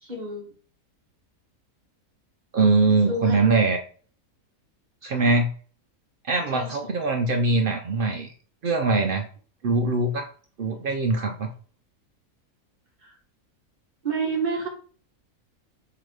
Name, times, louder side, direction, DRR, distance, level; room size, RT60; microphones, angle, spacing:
voice 1, 0.0-0.5 3.1-3.5 5.0-5.2 6.5-7.0 13.0-13.1 14.0-14.7, right 3 dB, 35° right, -1 dB, 1.3 m, -29 dB
voice 2, 2.5-3.8 5.0-5.5 6.2-8.3 8.6-9.3 9.6-10.3 10.6-11.5, right 3 dB, 75° right, 4 dB, 0.5 m, -22 dB
3.8 x 2.9 x 4.7 m, 0.43 s
omnidirectional pair, 1.5 m